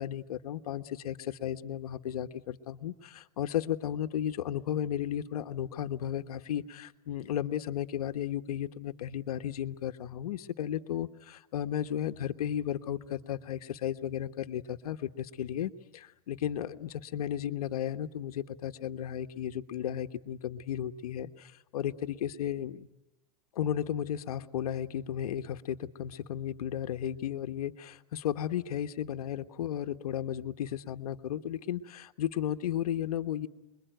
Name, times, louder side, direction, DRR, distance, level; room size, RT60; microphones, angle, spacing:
voice 1, 0.0-22.9 23.5-33.5, left 10 dB, 75° left, 9 dB, 1.3 m, -34 dB
27.5 x 22.5 x 9.2 m, 0.98 s
supercardioid pair, 145°, 19 cm